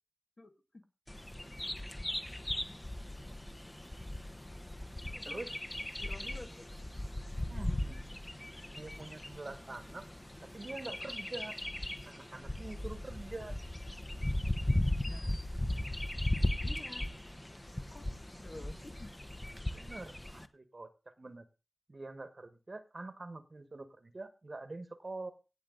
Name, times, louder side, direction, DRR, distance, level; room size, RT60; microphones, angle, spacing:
voice 1, 0.4-0.8 5.0-5.5 6.0-6.7 15.0-15.4 16.5-17.1 17.7-19.1, left 2 dB, 50° left, 5 dB, 1.8 m, -51 dB
Bird vocalization bird call bird song, 1.1-20.5, left 1 dB, 20° left, 1.1 m, -37 dB
voice 2, 7.4-8.0 8.7-10.1 10.4-11.6 12.0-13.6 19.7-20.9 21.2-21.5 21.9-25.3, right 2 dB, 50° right, 11 dB, 1.4 m, -45 dB
17.5 x 6.6 x 3.9 m, 0.31 s
cardioid pair, 45°, 0 cm